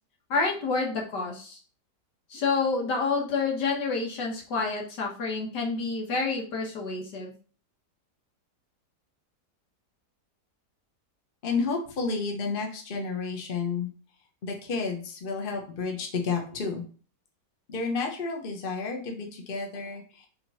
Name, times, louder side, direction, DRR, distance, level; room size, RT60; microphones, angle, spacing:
voice 1, 0.3-1.6 2.3-7.3, left 4 dB, 75° left, 0 dB, 2.0 m, -28 dB
voice 2, 11.4-13.9 14.4-16.8 17.7-20.3, left 4 dB, 35° left, 2 dB, 1.2 m, -31 dB
5.5 x 3.8 x 5.5 m, 0.40 s
omnidirectional pair, 1.8 m